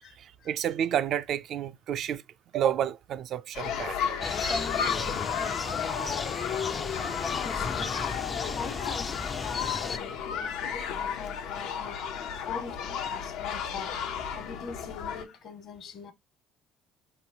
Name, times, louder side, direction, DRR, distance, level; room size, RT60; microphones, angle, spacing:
voice 1, 0.2-2.2 2.5-4.2, right 10 dB, 55° right, 0.4 m, -30 dB
sound 1, 3.5-15.2, left 7 dB, 75° left, 0.7 m, -33 dB
sound 2, 4.2-10.0, left 4 dB, 25° left, 0.3 m, -34 dB
voice 2, 7.2-16.1, left 6 dB, 55° left, 1.2 m, -42 dB
4.7 x 3.0 x 2.8 m
cardioid pair, 110°, 0 cm